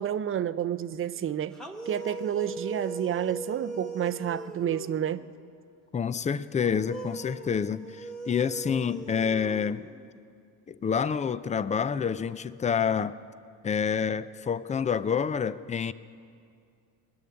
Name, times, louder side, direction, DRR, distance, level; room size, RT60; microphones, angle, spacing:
voice 1, 0.0-1.6 1.9-5.3, right 10 dB, 35° right, 0.5 m, -30 dB
sound 1, 1.5-5.3 6.6-10.2, right 3 dB, ahead, 1.4 m, -40 dB
voice 2, 5.9-9.9 10.7-13.2 13.6-15.9, left 7 dB, 20° left, 0.4 m, -28 dB
20.5 x 7.1 x 9.7 m
supercardioid pair, 90°, 39 cm